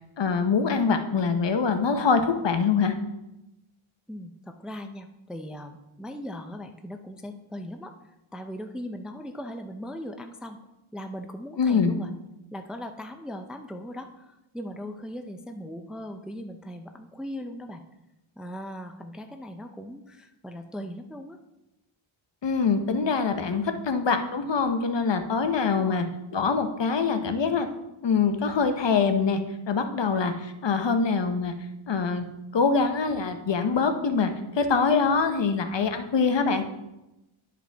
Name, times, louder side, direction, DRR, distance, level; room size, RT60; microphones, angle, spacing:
voice 1, 0.2-2.9 11.6-11.9 22.4-26.0 26.3-27.7 28.0-29.4 29.7-31.5 31.9-32.2 32.5-34.3 34.6-36.6, left 5 dB, 60° left, 7 dB, 0.8 m, -24 dB
voice 2, 4.1-7.9 8.3-10.6 10.9-12.1 12.5-17.8 18.4-21.4 25.6-26.2, equal, ahead, 6 dB, 0.4 m, -39 dB
11.0 x 5.1 x 3.4 m, 0.95 s
wide cardioid pair, 125°, 49 cm